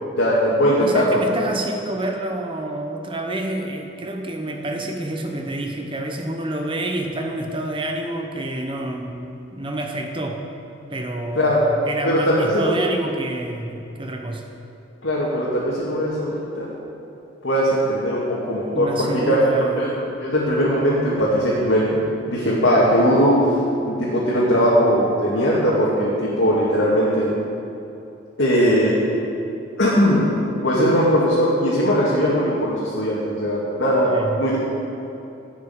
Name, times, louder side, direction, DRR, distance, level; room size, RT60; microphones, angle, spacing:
voice 1, 0.2-1.3 11.3-11.7 12.0-12.7 15.0-16.7 17.4-19.9 20.2-22.0 22.3-23.4 23.9-27.3 28.4-28.9 29.8-30.3 30.6-34.6, equal, 70° left, -7 dB, 2.2 m, -19 dB
voice 2, 0.8-10.4 10.9-14.5 18.7-20.0 34.0-34.4, right 1 dB, 25° right, 2 dB, 0.9 m, -28 dB
12.0 x 6.4 x 8.0 m, 2.9 s
head